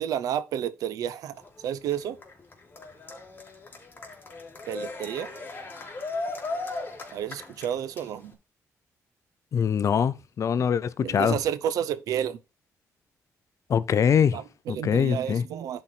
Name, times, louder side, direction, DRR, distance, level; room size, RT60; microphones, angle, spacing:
voice 1, 0.0-1.3 1.6-2.2 4.7-5.3 7.1-8.3 11.0-12.4 14.3-15.8, right 9 dB, 90° right, 0.8 m, -30 dB
Cheering, 1.3-8.3, left 3 dB, 35° left, 3.0 m, -37 dB
voice 2, 9.5-11.4 13.7-14.4 14.7-15.4, left 7 dB, 60° left, 0.7 m, -23 dB
11.0 x 4.6 x 4.3 m
cardioid pair, 80°, 6 cm